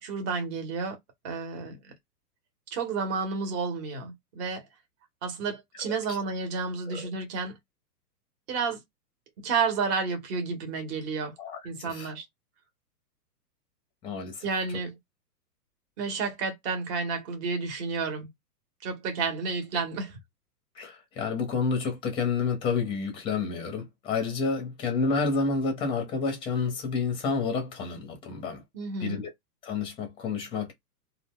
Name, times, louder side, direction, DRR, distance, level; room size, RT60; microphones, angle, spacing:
voice 1, 0.0-1.0 1.2-1.8 2.7-4.7 5.2-7.6 8.5-8.8 9.4-11.3 11.6-12.3 14.4-14.9 16.0-18.3 18.8-20.2 28.7-29.3, right 4 dB, 35° right, 1.0 m, -31 dB
voice 2, 11.4-12.1 14.0-14.4 20.8-28.6 29.0-29.3 29.6-30.7, left 4 dB, 10° left, 0.6 m, -29 dB
2.4 x 2.1 x 3.5 m
hypercardioid pair, 135°, 48 cm